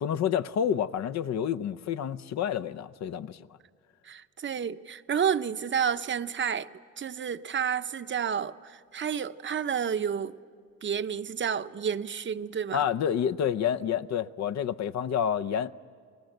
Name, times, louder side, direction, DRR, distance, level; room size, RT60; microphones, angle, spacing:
voice 1, 0.0-3.5 12.7-15.7, left 8 dB, 65° left, 0.7 m, -29 dB
voice 2, 4.0-6.7 7.0-10.4 10.8-12.8, right 7 dB, 40° right, 0.7 m, -30 dB
30.0 x 20.5 x 7.9 m
cardioid pair, 90°, 30 cm